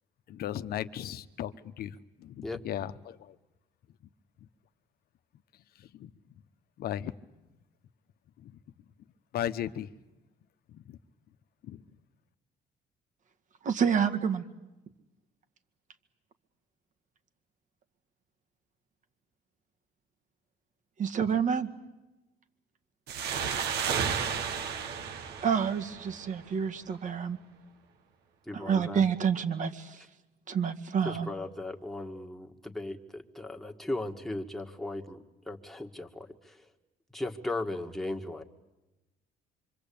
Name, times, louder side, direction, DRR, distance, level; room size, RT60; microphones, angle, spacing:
voice 1, 0.3-3.4 6.0-6.1 6.8-7.1 8.4-8.6 9.3-9.9 10.7-11.0 11.6-11.8, left 11 dB, 65° left, 12 dB, 1.1 m, -36 dB
voice 2, 13.6-14.4 21.0-21.7 25.4-27.4 28.5-30.0 30.5-31.3, right 7 dB, 50° right, 7 dB, 2.0 m, -28 dB
sound 1, 23.1-26.5, right 7 dB, 75° right, 1.9 m, -32 dB
voice 3, 28.5-29.0 31.0-36.7 37.1-38.4, left 2 dB, ahead, 2 dB, 1.9 m, -37 dB
26.0 x 25.0 x 8.7 m, 1.0 s
cardioid pair, 110°, 17 cm